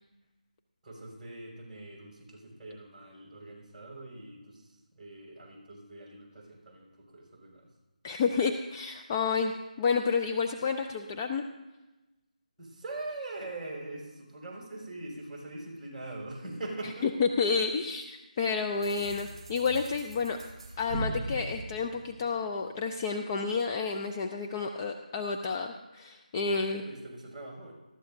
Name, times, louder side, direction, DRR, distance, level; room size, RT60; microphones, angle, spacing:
voice 1, 0.8-7.7 12.6-17.1 26.4-27.7, right 2 dB, 10° right, -6 dB, 5.7 m, -43 dB
voice 2, 8.0-9.5 9.8-11.4 17.2-20.4 20.8-26.8, left 5 dB, 20° left, 4 dB, 0.5 m, -30 dB
sound 1, 18.8-22.7, right 2 dB, 35° right, 5.2 m, -40 dB
19.5 x 14.5 x 2.7 m, 1.1 s
figure-of-eight pair, 160°, 4 cm